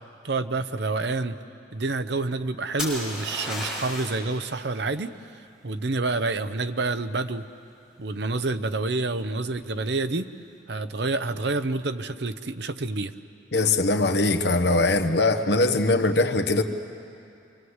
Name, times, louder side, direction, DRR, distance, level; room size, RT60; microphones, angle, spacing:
voice 1, 0.2-1.4 1.7-5.1 5.6-7.4 8.0-10.3 10.7-13.1, right 3 dB, 60° right, 11 dB, 0.8 m, -28 dB
sound 1, 2.8-4.2 7.9-8.4, left 1 dB, 5° right, 7.1 m, -33 dB
voice 2, 13.5-16.6, left 2 dB, 60° left, 8 dB, 1.2 m, -21 dB
28.0 x 25.5 x 8.1 m, 2.7 s
head